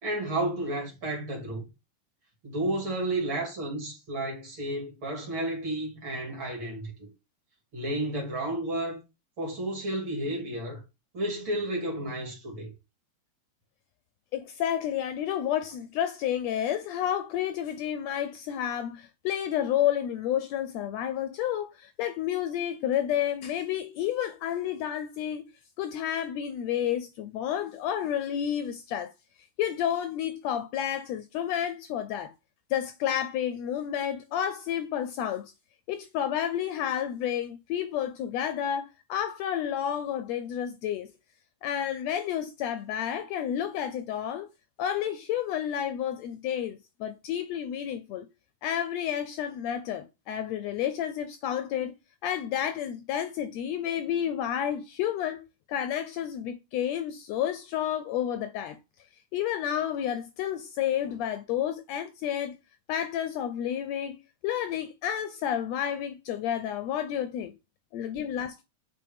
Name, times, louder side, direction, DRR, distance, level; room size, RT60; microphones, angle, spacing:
voice 1, 0.0-1.6 2.4-7.1 7.7-9.0 9.4-10.8 11.1-12.7, right 1 dB, 45° right, 2.7 m, -32 dB
voice 2, 14.3-25.4 25.8-29.1 29.6-32.3 32.7-35.5 35.9-41.1 41.6-44.5 44.8-48.3 48.6-51.9 52.2-55.4 55.7-58.8 59.3-62.6 62.9-67.5 67.9-68.6, left 10 dB, 80° left, 1.6 m, -30 dB
7.7 x 3.6 x 3.5 m
omnidirectional pair, 3.4 m